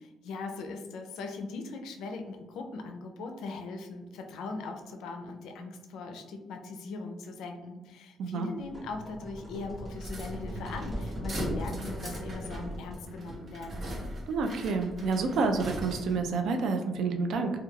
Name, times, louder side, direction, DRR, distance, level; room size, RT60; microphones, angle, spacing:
voice 1, 0.0-13.9, left 3 dB, 85° left, 4 dB, 0.3 m, -40 dB
voice 2, 8.2-8.5 14.3-17.5, right 4 dB, 75° right, 5 dB, 0.3 m, -29 dB
sound 1, 8.6-13.5, equal, 20° right, 0.8 m, -39 dB
sound 2, 10.0-16.3, equal, 50° right, 0.7 m, -39 dB
3.1 x 2.2 x 2.2 m, 1.1 s
cardioid pair, 90°, 0 cm